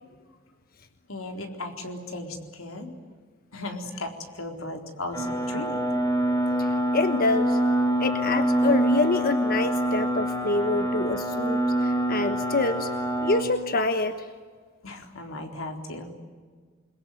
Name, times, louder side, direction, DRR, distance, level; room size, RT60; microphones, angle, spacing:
voice 1, 1.1-2.9 3.5-5.8 14.8-16.1, left 2 dB, 80° left, 4 dB, 4.1 m, -36 dB
sound 1, 5.1-13.4, right 1 dB, 20° left, 6.1 m, -25 dB
voice 2, 6.6-7.6 8.0-12.9 13.2-14.3, left 2 dB, 45° left, 8 dB, 1.2 m, -26 dB
28.5 x 22.5 x 9.3 m, 1.5 s
head